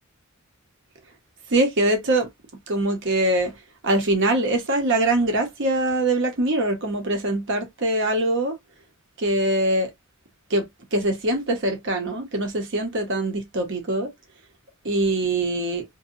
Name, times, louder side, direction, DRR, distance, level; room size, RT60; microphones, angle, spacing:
voice 1, 1.5-2.3 2.7-3.5 3.8-8.5 9.2-9.9 10.5-10.6 10.9-14.1 14.8-15.8, right 1 dB, 55° right, 0.8 m, -23 dB
2.7 x 2.2 x 2.5 m
head